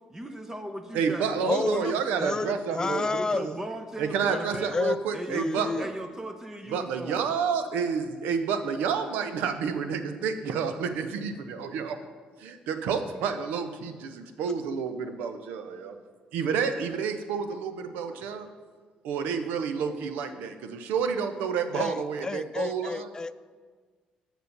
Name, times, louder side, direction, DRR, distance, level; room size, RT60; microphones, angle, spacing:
voice 1, 0.1-1.3 2.8-4.7 5.1-7.3, right 1 dB, 15° right, 6 dB, 0.8 m, -37 dB
voice 2, 0.9-3.0 3.3-3.5 4.0-5.9 6.7-12.0 12.4-16.0 16.3-18.5 19.0-23.1, right 6 dB, 85° right, 8 dB, 0.7 m, -29 dB
voice 3, 1.5-3.4 4.3-5.0 5.3-5.9 21.7-23.4, left 4 dB, 25° left, 14 dB, 0.4 m, -30 dB
6.9 x 6.1 x 6.7 m, 1.5 s
cardioid pair, 80°, 3 cm